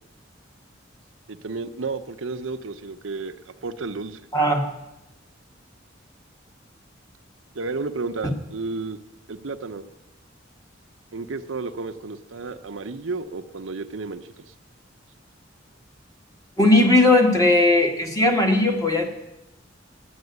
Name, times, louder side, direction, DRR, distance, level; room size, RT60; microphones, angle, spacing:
voice 1, 1.3-3.4 3.6-4.2 7.5-9.0 9.3-9.9 11.1-14.2, right 3 dB, 80° right, 8 dB, 0.7 m, -32 dB
voice 2, 4.3-4.7 8.2-8.3 16.6-19.1, left 2 dB, 20° left, 2 dB, 1.7 m, -18 dB
12.0 x 8.7 x 9.4 m, 0.99 s
head